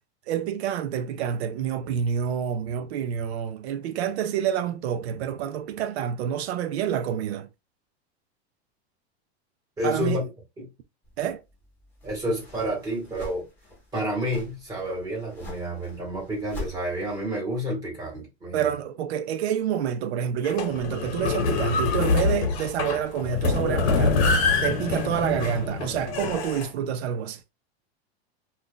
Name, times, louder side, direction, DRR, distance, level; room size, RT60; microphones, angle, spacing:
voice 1, 0.3-7.5 9.8-10.2 11.2-11.4 18.5-27.4, right 9 dB, 75° right, 0.5 m, -28 dB
voice 2, 9.8-10.2 10.6-10.7 12.0-13.4 13.9-18.7, equal, 10° right, 1.3 m, -29 dB
sound 1, 11.0-17.3, left 2 dB, 5° left, 1.0 m, -44 dB
sound 2, 20.4-26.7, left 4 dB, 80° left, 0.9 m, -25 dB
2.6 x 2.4 x 3.7 m
supercardioid pair, 170°, 32 cm